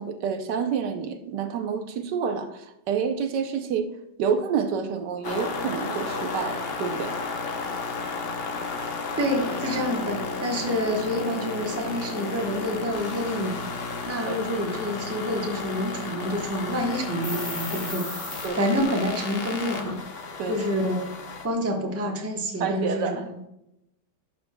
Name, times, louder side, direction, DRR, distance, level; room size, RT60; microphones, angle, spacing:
voice 1, 0.0-3.9 4.2-7.2 14.3-14.4 18.4-18.7 20.4-20.6 22.6-23.2, right 6 dB, 80° right, 7 dB, 1.3 m, -28 dB
sound 1, 5.2-21.5, left 4 dB, 50° left, 0.7 m, -33 dB
voice 2, 9.2-13.6 14.0-18.1 18.5-20.0 20.5-21.0 21.4-23.4, equal, 10° right, 0 dB, 0.8 m, -28 dB
sound 2, 17.2-18.5, left 1 dB, 20° left, 1.5 m, -35 dB
11.5 x 6.8 x 2.2 m, 0.85 s
omnidirectional pair, 1.9 m